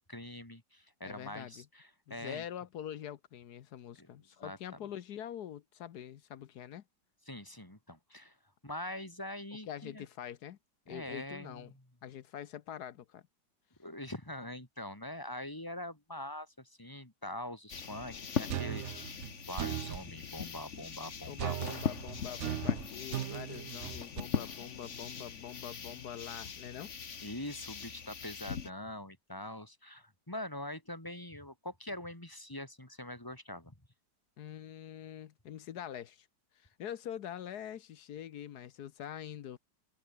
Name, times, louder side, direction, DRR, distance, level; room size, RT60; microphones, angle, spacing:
voice 1, 0.0-2.4 4.0-4.1 4.4-4.6 7.3-8.4 8.6-10.1 10.9-11.8 13.8-19.1 19.5-21.6 27.2-33.7, left 1 dB, 10° left, 3.6 m, -43 dB
voice 2, 1.0-1.7 2.1-6.8 9.7-10.6 10.9-11.7 12.0-13.2 21.3-26.9 34.4-36.3 36.5-39.6, left 10 dB, 65° left, 1.3 m, -44 dB
sound 1, 17.7-28.7, left 6 dB, 40° left, 1.6 m, -40 dB
sound 2, 18.5-20.1 21.4-24.2, right 12 dB, 90° right, 0.6 m, -38 dB
omnidirectional pair, 2.0 m